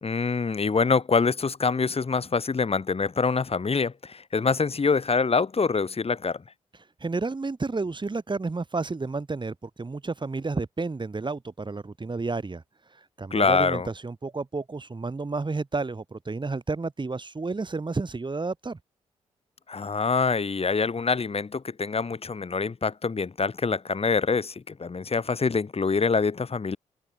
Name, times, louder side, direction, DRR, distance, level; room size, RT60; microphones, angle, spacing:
voice 1, 0.0-6.4 13.3-13.9 19.7-26.8, left 4 dB, 45° left, 4.1 m, -25 dB
voice 2, 7.0-12.6 13.2-18.8, right 3 dB, 30° right, 3.4 m, -31 dB
hypercardioid pair, 45°, 15 cm